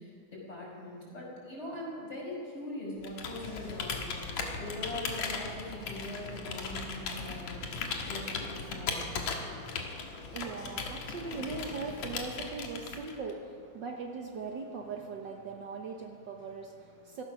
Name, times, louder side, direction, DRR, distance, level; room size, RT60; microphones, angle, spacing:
voice 1, 0.0-7.6 8.1-9.0, left 1 dB, 20° left, -4 dB, 5.3 m, -41 dB
Computer keyboard, 3.0-13.3, left 4 dB, 70° left, 2.6 m, -38 dB
voice 2, 9.4-17.2, right 4 dB, 90° right, 2 dB, 0.9 m, -40 dB
17.0 x 14.0 x 6.1 m, 2.3 s
omnidirectional pair, 3.5 m